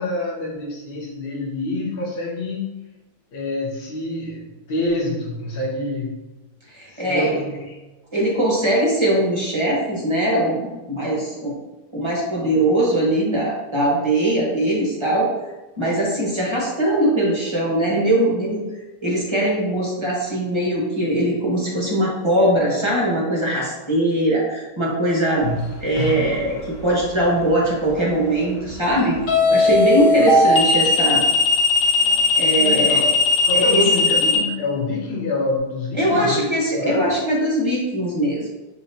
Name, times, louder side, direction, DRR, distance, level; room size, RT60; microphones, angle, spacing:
voice 1, 0.0-2.8 3.3-6.2 6.9-7.7 25.4-25.7 30.2-30.3 32.6-33.2 33.4-37.1, left 2 dB, 50° left, -4 dB, 0.7 m, -27 dB
voice 2, 6.7-7.4 8.1-11.5 11.9-15.3 15.8-18.6 19.0-25.5 25.8-29.2 29.5-31.2 32.3-33.0 33.5-33.9 35.9-38.5, right 1 dB, 25° right, -4 dB, 0.6 m, -21 dB
sound 1, 26.0-26.3 29.3-34.4, left 3 dB, 75° left, 1.5 m, -17 dB
6.9 x 2.8 x 2.7 m, 1.1 s
omnidirectional pair, 1.9 m